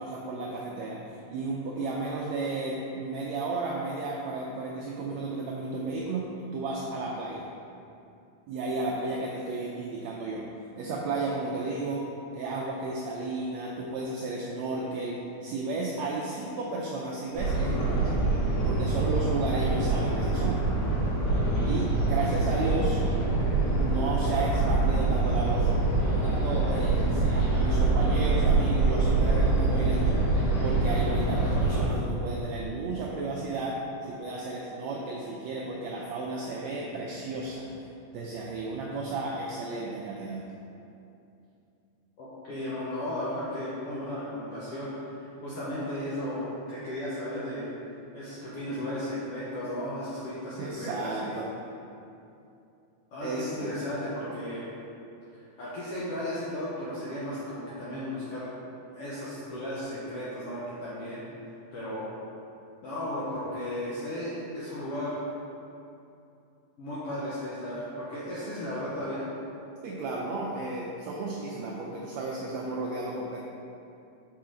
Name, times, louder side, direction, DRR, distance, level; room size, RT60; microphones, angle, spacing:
voice 1, 0.0-6.3 6.5-7.5 8.5-10.4 10.8-12.0 12.3-18.2 18.6-20.7 21.6-23.0 23.8-25.7 26.1-30.2 30.6-33.8 34.1-37.7 38.1-40.4 50.6-51.5 53.2-53.7 69.8-73.4, right 3 dB, 85° right, -3 dB, 1.5 m, -33 dB
sound 1, 17.4-31.9, right 3 dB, 90° left, 3.0 m, -25 dB
voice 2, 42.2-47.7 48.1-51.3 53.1-54.6 55.3-58.5 58.9-61.2 61.7-62.1 62.8-65.2 66.8-69.2, left 1 dB, 75° left, -8 dB, 1.4 m, -35 dB
5.7 x 5.5 x 3.8 m, 2.7 s
omnidirectional pair, 3.7 m